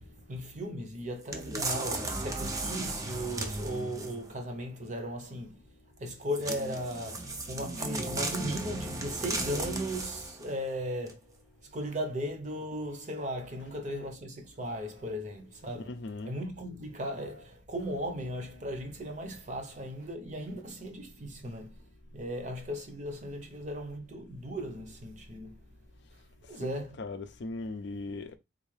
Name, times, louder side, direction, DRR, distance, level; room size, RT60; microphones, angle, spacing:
voice 1, 0.0-5.6 6.0-11.3 11.6-21.8 22.1-25.6 26.5-27.0, equal, 35° right, 0.8 m, -37 dB
sound 1, 1.3-4.3 6.3-10.5 11.1-11.2, right 2 dB, 15° right, 0.4 m, -35 dB
voice 2, 15.7-16.3 26.5-28.4, left 3 dB, 60° left, 0.4 m, -39 dB
3.9 x 2.6 x 3.2 m
head